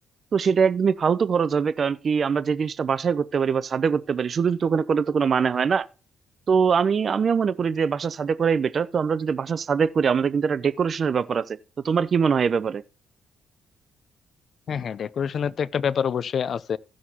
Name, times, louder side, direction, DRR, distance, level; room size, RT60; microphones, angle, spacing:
voice 1, 0.3-5.9 6.5-11.6 11.8-12.8, right 6 dB, 45° right, 0.5 m, -23 dB
voice 2, 14.7-16.8, left 7 dB, 55° left, 0.4 m, -26 dB
16.0 x 6.3 x 2.8 m
cardioid pair, 90°, 0 cm